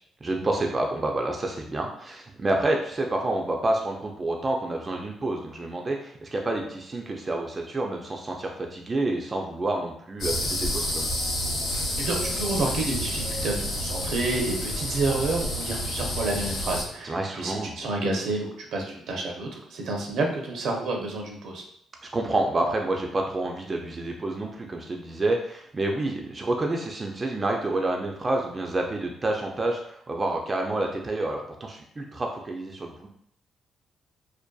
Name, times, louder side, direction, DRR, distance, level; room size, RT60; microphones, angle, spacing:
voice 1, 0.2-11.0 17.0-17.7 22.0-33.1, right 2 dB, 30° right, 1 dB, 0.3 m, -28 dB
sound 1, 10.2-16.8, left 1 dB, 85° left, 0.7 m, -29 dB
voice 2, 12.0-21.6, right 2 dB, 75° right, 0 dB, 0.6 m, -29 dB
2.5 x 2.2 x 2.3 m, 0.67 s
cardioid pair, 90°, 0 cm